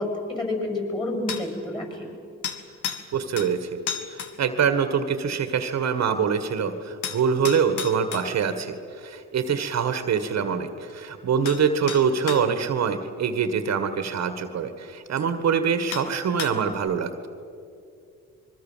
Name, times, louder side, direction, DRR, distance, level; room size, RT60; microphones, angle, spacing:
voice 1, 0.0-2.1, left 2 dB, 15° left, 2 dB, 7.0 m, -29 dB
sound 1, 1.3-1.5 2.4-3.1 3.4-3.5 3.9-4.3 7.0-8.3 10.9-11.0 11.5-11.6 11.9-12.4 14.1-14.2 15.2-15.3 15.9-16.1 16.4-16.7, left 7 dB, 85° left, 2.1 m, -32 dB
voice 2, 3.1-3.7 4.1-17.3, right 6 dB, 60° right, 9 dB, 1.8 m, -24 dB
25.5 x 23.0 x 7.5 m, 2.5 s
cardioid pair, 90°, 30 cm